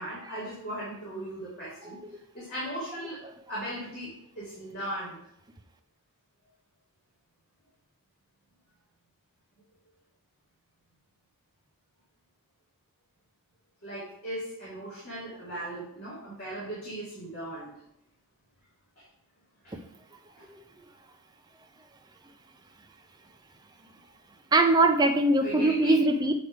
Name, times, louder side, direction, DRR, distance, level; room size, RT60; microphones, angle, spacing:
voice 1, 0.0-2.0 2.3-3.2 3.5-5.2 13.8-17.7 19.0-19.1 19.6-19.8 25.4-26.0, right 1 dB, 45° left, -10 dB, 2.5 m, -37 dB
voice 2, 24.5-26.3, right 2 dB, 20° right, 5 dB, 0.4 m, -22 dB
7.9 x 3.4 x 4.8 m, 0.76 s
head